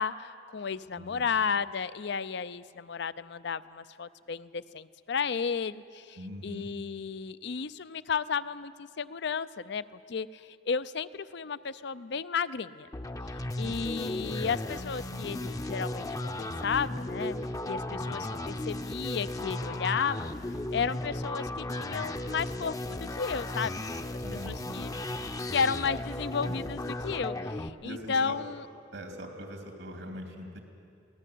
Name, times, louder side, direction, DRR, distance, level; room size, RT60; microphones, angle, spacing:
voice 1, 0.0-12.9 13.6-17.3 17.7-20.3 20.7-24.9 25.5-28.6, left 6 dB, 65° left, 16 dB, 0.6 m, -33 dB
voice 2, 1.0-1.3 6.2-6.7 13.6-13.8 17.9-18.2 24.2-24.9 26.5-26.6 27.8-28.4 28.9-30.6, equal, 85° right, 3 dB, 2.9 m, -42 dB
sound 1, 12.9-27.7, left 1 dB, 20° left, 0.7 m, -35 dB
23.0 x 17.5 x 8.5 m, 2.4 s
head